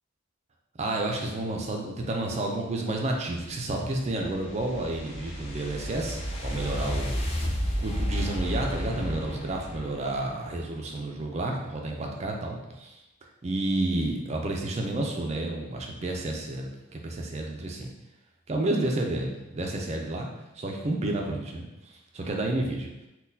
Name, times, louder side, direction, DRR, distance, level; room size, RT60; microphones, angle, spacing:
voice 1, 0.8-7.2 7.8-13.0 13.4-17.9 18.5-20.3 20.5-22.9, right 2 dB, 30° right, 1 dB, 0.4 m, -30 dB
sound 1, 3.4-10.7, equal, 30° left, 0.5 m, -32 dB
3.9 x 2.2 x 2.6 m, 0.97 s
head